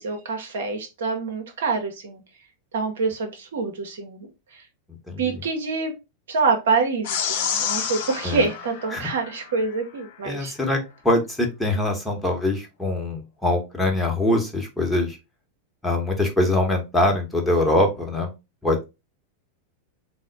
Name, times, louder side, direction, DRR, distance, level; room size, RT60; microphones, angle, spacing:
voice 1, 0.0-2.2 2.7-4.6 5.2-5.9 6.3-10.5, right 4 dB, 60° right, 4 dB, 0.8 m, -26 dB
sound 1, 7.0-9.7, left 8 dB, 50° left, 0.7 m, -29 dB
voice 2, 10.2-10.8 11.0-15.2 15.8-18.3 18.6-18.8, left 1 dB, 5° left, 0 dB, 1.0 m, -23 dB
4.0 x 2.1 x 3.8 m, 0.25 s
figure-of-eight pair, 90°, 0 cm